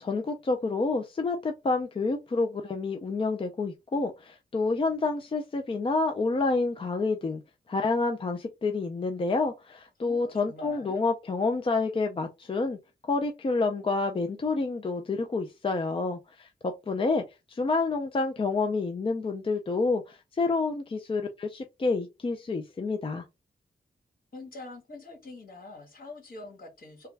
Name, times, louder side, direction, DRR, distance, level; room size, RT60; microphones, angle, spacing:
voice 1, 0.0-7.4 7.7-12.8 13.1-17.2 17.5-23.2, left 3 dB, 30° left, 0.4 m, -28 dB
voice 2, 10.0-11.0 24.3-27.1, left 2 dB, 60° left, 1.5 m, -45 dB
3.4 x 2.2 x 3.2 m
wide cardioid pair, 100°, 17 cm